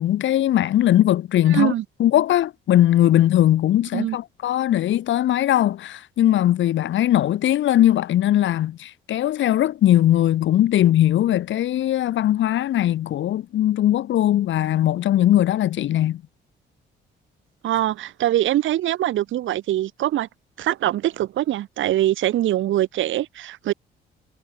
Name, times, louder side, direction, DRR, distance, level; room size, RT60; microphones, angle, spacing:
voice 1, 0.0-1.7 2.0-16.2, left 12 dB, 70° left, 1.1 m, -19 dB
voice 2, 1.5-1.8 3.9-4.2 17.6-20.3 20.6-23.7, right 13 dB, 80° right, 1.9 m, -23 dB
cardioid pair, 90°, 20 cm